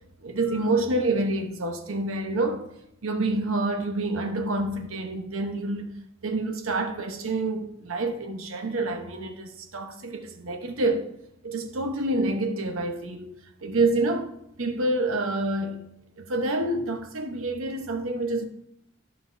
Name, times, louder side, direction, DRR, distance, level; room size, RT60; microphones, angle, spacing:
voice 1, 0.2-2.7 3.0-5.9 6.2-11.1 11.4-13.3 13.6-15.8 16.2-18.5, right 2 dB, 70° right, 1.0 m, -27 dB
12.0 x 5.7 x 2.6 m
head